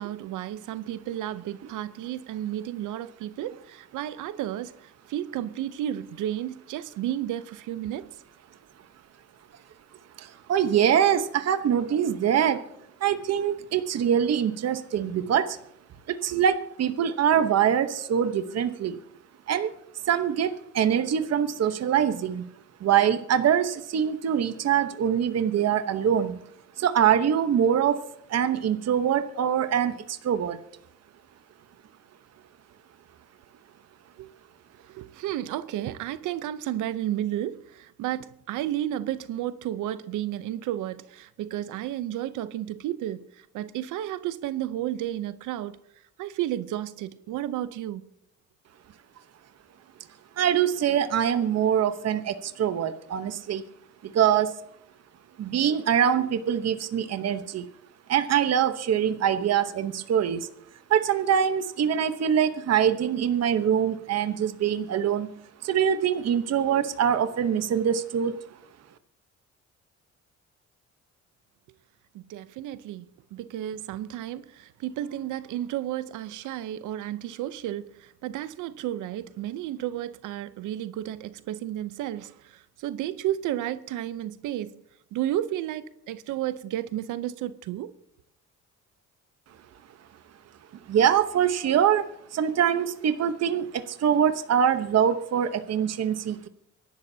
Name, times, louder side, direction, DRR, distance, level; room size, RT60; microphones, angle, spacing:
voice 1, 0.0-8.1 34.2-34.3 34.9-43.3 43.5-45.8 46.2-48.0 72.1-73.1 73.3-84.8 85.1-87.9, right 12 dB, 85° right, 0.7 m, -32 dB
voice 2, 10.2-12.6 13.0-15.6 16.1-19.0 19.5-19.7 20.1-22.5 22.8-26.4 26.8-28.0 28.3-30.6 50.4-53.6 54.0-54.6 55.4-57.7 58.1-60.5 60.9-65.3 65.6-68.4 90.9-92.1 92.3-96.5, right 9 dB, 55° right, 1.0 m, -24 dB
25.0 x 11.5 x 2.8 m
cardioid pair, 90°, 30 cm